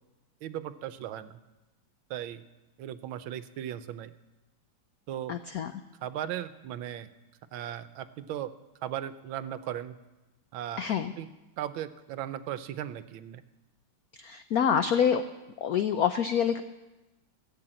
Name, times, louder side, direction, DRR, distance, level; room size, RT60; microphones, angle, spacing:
voice 1, 0.4-1.4 2.1-2.4 2.8-4.1 5.1-5.4 6.0-7.1 7.5-8.5 8.8-10.0 10.5-11.3 11.6-13.4, right 11 dB, 80° right, 13 dB, 1.4 m, -37 dB
voice 2, 5.3-5.7 10.8-11.1 14.2-15.2 15.6-16.6, left 8 dB, 90° left, 9 dB, 0.8 m, -26 dB
15.0 x 7.7 x 8.9 m, 1.1 s
omnidirectional pair, 2.3 m